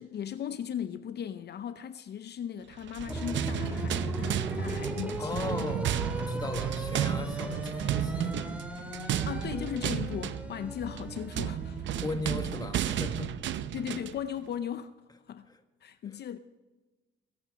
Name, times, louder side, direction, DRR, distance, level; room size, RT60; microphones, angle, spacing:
voice 1, 0.0-5.5 9.2-11.8 13.7-15.0 15.3-15.5 15.8-16.4, left 9 dB, 55° left, 0.7 m, -37 dB
sound 1, 2.8-14.2, right 10 dB, 70° right, 0.7 m, -33 dB
sound 2, 3.1-12.6, equal, 5° right, 2.1 m, -38 dB
voice 2, 5.2-8.3 12.0-13.6 15.5-15.6 16.0-16.2, left 3 dB, 20° left, 1.6 m, -37 dB
21.0 x 8.7 x 5.3 m
cardioid pair, 90°, 20 cm